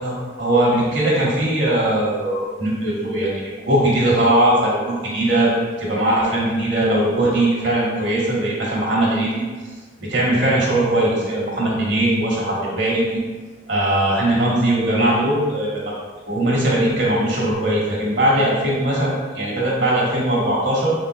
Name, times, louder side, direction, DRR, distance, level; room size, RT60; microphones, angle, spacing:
voice 1, 0.0-5.5 5.8-9.4 10.0-13.2 13.7-15.9 16.3-20.9, right 1 dB, 65° right, -5 dB, 1.5 m, -20 dB
5.3 x 3.7 x 2.4 m, 1.4 s
head